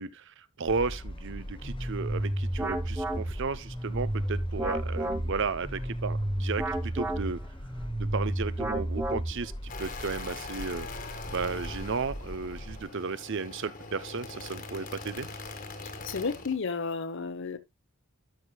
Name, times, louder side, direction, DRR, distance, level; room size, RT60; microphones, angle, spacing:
voice 1, 0.0-7.4 8.0-10.9 11.3-15.3, right 4 dB, 55° right, 0.6 m, -34 dB
sound 1, 0.7-12.9, equal, 25° left, 0.9 m, -41 dB
sound 2, 1.6-9.7, right 1 dB, 10° right, 0.6 m, -32 dB
sound 3, 9.7-16.6, left 3 dB, 40° left, 1.5 m, -42 dB
voice 2, 16.0-17.6, left 4 dB, 55° left, 1.0 m, -32 dB
12.5 x 6.4 x 2.2 m
head